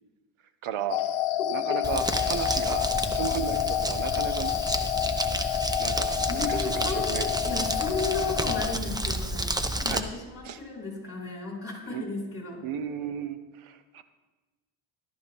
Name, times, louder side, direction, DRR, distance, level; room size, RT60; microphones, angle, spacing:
voice 1, 0.6-1.0 1.5-4.5 5.8-7.3 9.8-10.0 10.4-10.6 11.9-12.0 12.6-14.0, right 9 dB, 75° right, 11 dB, 1.1 m, -34 dB
sound 1, 0.9-8.7, left 12 dB, 75° left, 0.8 m, -29 dB
voice 2, 1.4-1.8 6.3-12.6, left 3 dB, 30° left, -1 dB, 5.0 m, -35 dB
Crumpling crinkling, 1.8-10.0, right 1 dB, 10° right, 0.8 m, -30 dB
14.0 x 12.5 x 3.6 m, 1.2 s
cardioid pair, 100°, 49 cm